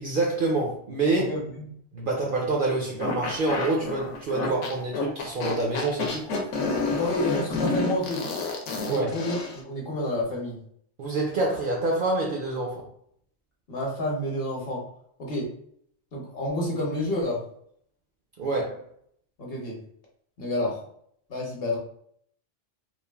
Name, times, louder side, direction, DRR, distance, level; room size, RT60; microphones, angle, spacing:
voice 1, 0.0-1.3 1.9-6.4 8.9-9.2 11.0-12.9 18.4-18.8, right 2 dB, 60° right, -1 dB, 0.6 m, -27 dB
voice 2, 1.2-1.7 6.9-8.3 8.8-10.6 13.7-14.8 15.2-15.5 16.1-17.4 19.4-19.8 20.4-20.8 21.3-21.8, left 1 dB, 55° left, -2 dB, 1.0 m, -29 dB
sound 1, 3.0-9.6, left 3 dB, 85° left, 1.0 m, -29 dB
3.0 x 2.3 x 2.2 m, 0.66 s
omnidirectional pair, 1.2 m